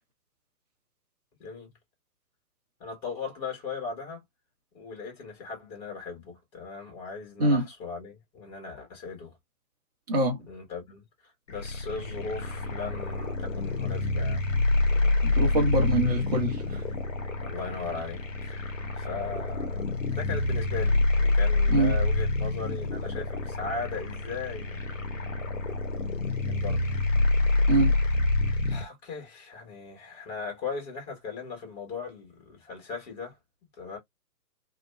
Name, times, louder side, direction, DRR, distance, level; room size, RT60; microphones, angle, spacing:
voice 1, 2.8-4.2 4.7-9.4 10.5-14.5 14.9-15.2 17.4-25.6 26.4-26.9 28.7-33.4 33.8-34.0, left 4 dB, 25° left, 1.2 m, -38 dB
voice 2, 10.1-10.4 15.2-16.8 21.7-21.9 27.7-27.9, right 2 dB, 25° right, 0.7 m, -24 dB
sound 1, 11.5-28.9, left 2 dB, 50° left, 0.8 m, -27 dB
2.7 x 2.1 x 2.2 m
figure-of-eight pair, 130°, 49 cm